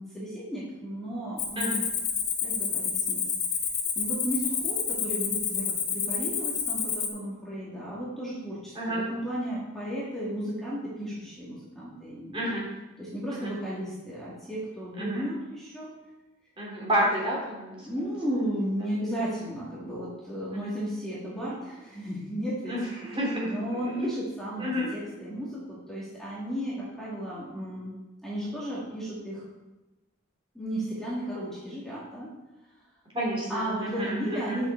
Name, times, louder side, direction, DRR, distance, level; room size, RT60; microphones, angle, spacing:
voice 1, 0.0-1.8 2.4-3.2 4.0-12.5 13.0-15.9 17.9-22.8 23.0-28.0 28.2-29.5 30.5-32.3 33.5-34.7, equal, ahead, -9 dB, 2.0 m, -34 dB
Cricket, 1.4-7.1, left 7 dB, 70° left, 2.0 m, -29 dB
voice 2, 16.6-17.9 20.5-20.7 22.7-23.9 24.6-24.9 33.1-34.6, equal, 25° right, -4 dB, 3.1 m, -30 dB
9.8 x 6.6 x 4.5 m, 1.1 s
head